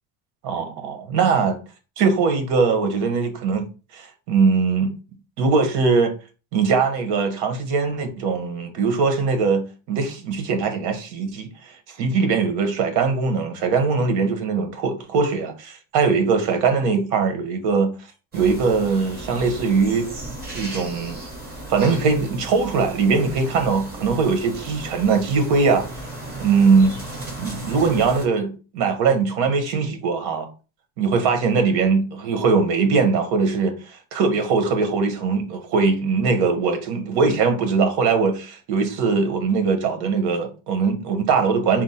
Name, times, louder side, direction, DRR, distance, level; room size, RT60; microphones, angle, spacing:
voice 1, 0.4-1.6 2.0-3.7 3.9-4.9 5.4-6.1 6.5-11.5 11.9-17.9 18.3-20.1 20.5-21.2 21.7-25.8 26.4-26.9 27.4-30.5 31.0-41.8, right 4 dB, 80° right, 1.2 m, -21 dB
sound 1, 18.3-28.2, right 2 dB, 25° right, 1.5 m, -35 dB
4.4 x 2.1 x 4.3 m
cardioid pair, 160°, 40 cm